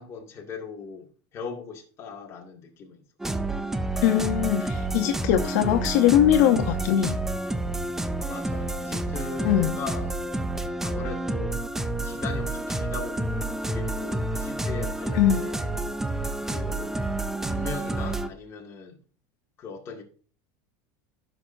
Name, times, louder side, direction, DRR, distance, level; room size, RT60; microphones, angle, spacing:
voice 1, 0.0-3.0 8.2-10.2 10.8-11.6 12.0-15.8 16.4-17.0 17.4-19.0 19.6-20.0, left 5 dB, 30° left, 2.1 m, -39 dB
sound 1, 3.2-18.3, right 2 dB, 5° right, 0.4 m, -29 dB
voice 2, 4.0-7.1 9.4-9.8 15.2-15.4, left 11 dB, 70° left, 0.8 m, -21 dB
15.0 x 6.1 x 2.6 m
cardioid pair, 165°, 10 cm